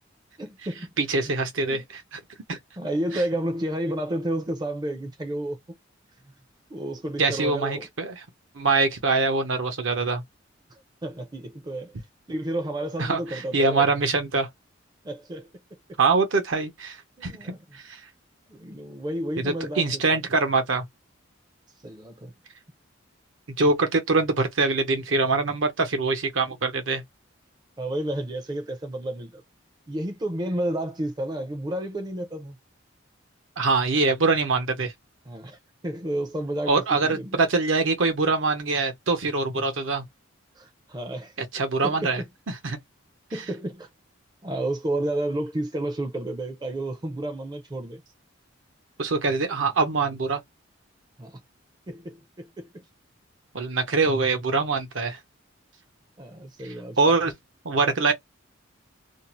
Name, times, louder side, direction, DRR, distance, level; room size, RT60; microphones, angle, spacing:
voice 1, 0.4-0.9 1.6-1.8 2.8-5.6 6.7-7.9 10.7-12.0 12.3-13.8 15.0-15.5 17.2-17.6 18.5-20.0 21.8-22.3 27.8-29.4 29.9-32.6 35.3-35.6 35.8-37.4 40.6-41.3 41.8-42.2 43.3-43.9 44.4-48.0 51.2-51.4 51.9-52.8 56.2-57.0, right 1 dB, 20° right, 0.5 m, -31 dB
voice 2, 1.0-2.2 2.5-2.6 7.2-8.2 8.6-10.2 13.0-14.5 16.0-17.0 17.2-17.3 17.7-18.0 19.4-20.9 23.6-27.0 33.6-34.9 36.7-40.0 41.4-42.2 42.5-42.8 49.0-50.4 53.5-55.2 57.0-57.3 57.6-58.1, right 3 dB, 75° right, 0.8 m, -24 dB
2.6 x 2.0 x 2.9 m
head